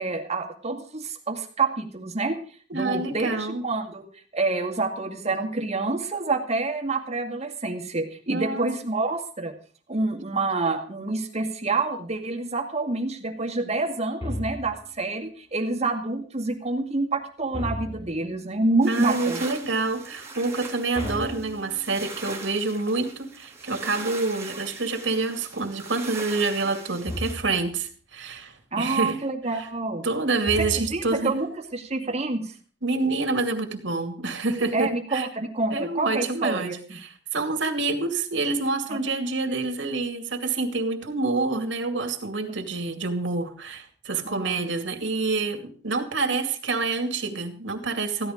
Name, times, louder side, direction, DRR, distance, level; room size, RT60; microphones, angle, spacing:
voice 1, 0.0-2.4 2.7-4.0 4.3-9.5 9.9-19.4 28.7-30.0 30.8-32.5 34.7-36.8 38.9-39.0 44.2-44.6, right 3 dB, 35° right, 3 dB, 2.1 m, -27 dB
voice 2, 2.7-3.6 8.3-8.7 18.9-29.2 30.0-31.4 32.8-35.3 35.7-48.3, right 3 dB, 85° right, 6 dB, 2.4 m, -27 dB
sound 1, 14.2-15.0 17.5-18.3 20.9-22.1 27.0-27.7 30.4-31.3, left 1 dB, 30° left, 3.3 m, -34 dB
sound 2, 18.8-27.3, right 3 dB, 15° right, 2.6 m, -40 dB
15.5 x 11.5 x 5.1 m, 0.43 s
head